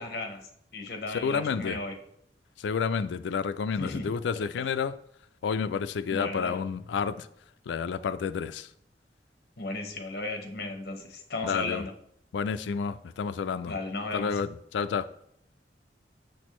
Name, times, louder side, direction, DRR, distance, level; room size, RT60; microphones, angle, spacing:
voice 1, 0.0-2.0 3.8-4.1 6.1-6.6 9.6-11.9 13.7-14.3, left 2 dB, 55° left, 1.0 m, -35 dB
voice 2, 1.1-1.8 2.6-4.9 5.4-7.3 7.7-8.7 11.4-11.8 12.3-13.8 14.1-15.1, left 6 dB, 85° left, 0.3 m, -30 dB
6.5 x 6.2 x 3.1 m
head